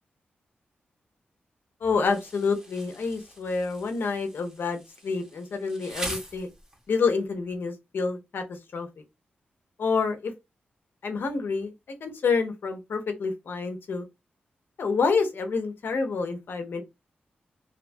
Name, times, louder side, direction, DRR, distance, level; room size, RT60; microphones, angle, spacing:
voice 1, 1.8-6.5 6.9-8.4 8.7-8.9 9.8-10.3 11.0-11.7 12.0-14.0 14.8-16.8, left 4 dB, 70° left, 0.6 m, -28 dB
Insect, 2.1-7.0, right 1 dB, 15° right, 0.7 m, -42 dB
2.7 x 2.2 x 2.6 m
cardioid pair, 80°, 4 cm